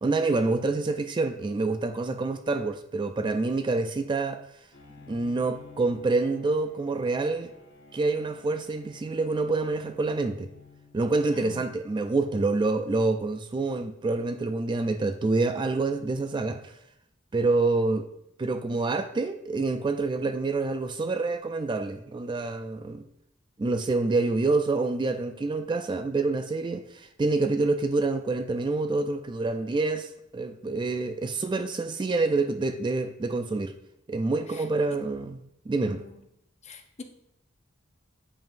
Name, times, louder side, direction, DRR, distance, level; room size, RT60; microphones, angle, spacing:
voice 1, 0.0-4.4 5.1-7.5 7.9-10.5 10.9-16.7 17.3-18.1 18.4-23.0 23.6-33.7 34.1-36.0, right 3 dB, 25° right, 0.3 m, -27 dB
Bowed string instrument, 4.7-11.4, left 3 dB, 60° left, 1.3 m, -52 dB
voice 2, 11.3-11.6 34.5-34.6 35.8-36.2 36.6-37.0, left 4 dB, 35° left, 0.6 m, -44 dB
9.0 x 5.4 x 2.5 m
head